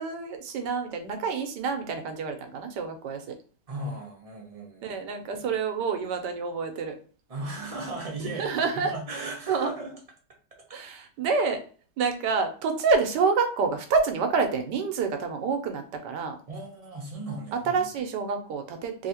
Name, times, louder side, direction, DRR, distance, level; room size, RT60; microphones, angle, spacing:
voice 1, 0.0-3.4 4.8-7.0 8.2-9.0 9.5-9.7 10.7-11.6 12.0-16.4 17.5-19.1, right 5 dB, 85° right, 6 dB, 1.3 m, -28 dB
voice 2, 3.7-5.0 5.4-5.5 7.3-9.9 16.5-17.9, right 2 dB, 35° right, 0 dB, 0.5 m, -36 dB
3.2 x 2.8 x 2.8 m, 0.41 s
omnidirectional pair, 1.8 m